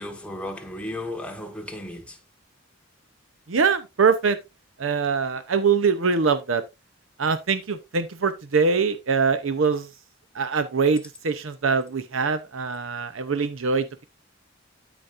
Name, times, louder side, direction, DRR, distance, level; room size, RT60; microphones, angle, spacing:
voice 1, 0.0-2.2, left 1 dB, 5° left, 1.5 m, -34 dB
voice 2, 3.5-4.4 4.8-6.6 7.2-9.9 10.3-13.9, right 5 dB, 90° right, 0.7 m, -23 dB
13.0 x 5.2 x 2.5 m
head